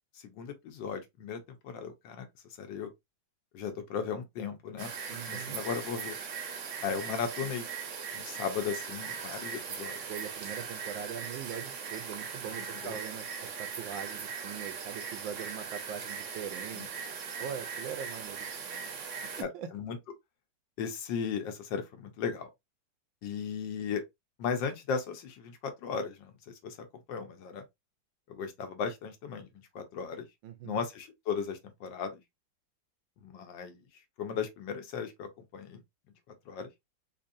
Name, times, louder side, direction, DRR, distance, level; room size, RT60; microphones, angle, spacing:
voice 1, 0.2-2.3 2.6-2.9 3.5-4.9 5.3-6.2 6.8-7.7 8.1-10.0 12.8-13.0 16.7-16.9 19.4-19.5 19.7-20.0 20.8-22.5 23.2-24.0 24.4-27.6 28.3-29.5 29.7-30.2 30.6-32.2 33.2-33.8 34.2-35.8 36.5-36.7, left 6 dB, 75° left, 1.5 m, -36 dB
sound 1, 4.8-19.4, right 6 dB, 60° right, 0.8 m, -39 dB
voice 2, 5.1-5.6 10.1-16.8 17.4-18.9 19.4-19.7 30.4-30.8, right 8 dB, 90° right, 1.5 m, -42 dB
4.2 x 2.6 x 2.6 m
omnidirectional pair, 2.1 m